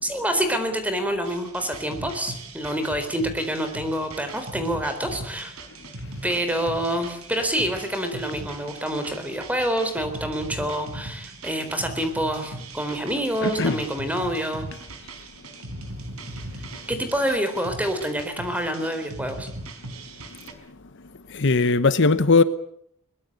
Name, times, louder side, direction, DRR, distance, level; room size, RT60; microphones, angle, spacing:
voice 1, 0.0-5.5 6.2-14.6 16.9-19.5, equal, 5° right, 4.0 m, -27 dB
sound 1, 1.2-20.5, right 2 dB, 75° right, 4.6 m, -39 dB
voice 2, 13.4-13.8 21.3-22.4, left 4 dB, 55° left, 1.0 m, -19 dB
22.5 x 21.0 x 8.2 m
head